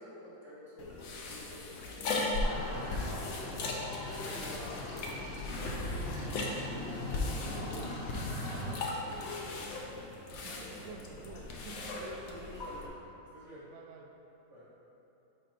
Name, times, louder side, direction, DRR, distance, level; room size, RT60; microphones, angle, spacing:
voice 1, 0.0-4.0 4.4-5.2 5.6-6.5 7.1-8.0 9.1-9.6 10.4-10.6 12.0-12.9 13.3-13.7 14.5-14.7, left 2 dB, 45° right, -10 dB, 1.3 m, -49 dB
sound 1, 0.8-12.9, left 2 dB, 65° left, 0.9 m, -38 dB
sound 2, 2.4-8.1, left 4 dB, 90° left, 1.5 m, -45 dB
sound 3, 2.5-8.7, equal, 45° left, 1.3 m, -41 dB
voice 2, 7.5-8.0 8.9-9.4 10.3-12.0 13.5-14.1, right 4 dB, 80° right, 3 dB, 1.3 m, -50 dB
5.1 x 5.1 x 4.4 m, 2.9 s
omnidirectional pair, 2.1 m